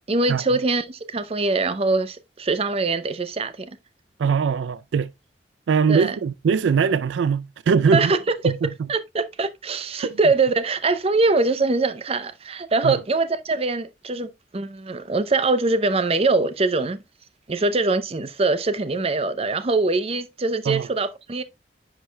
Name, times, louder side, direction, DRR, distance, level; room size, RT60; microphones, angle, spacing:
voice 1, 0.0-3.7 5.9-6.2 7.9-8.5 8.9-17.0 17.5-21.4, right 3 dB, 35° right, 0.6 m, -23 dB
voice 2, 4.2-5.1 5.7-8.1 8.4-8.7 12.8-13.0 20.7-20.9, right 6 dB, 85° right, 0.4 m, -21 dB
10.0 x 4.7 x 2.2 m
head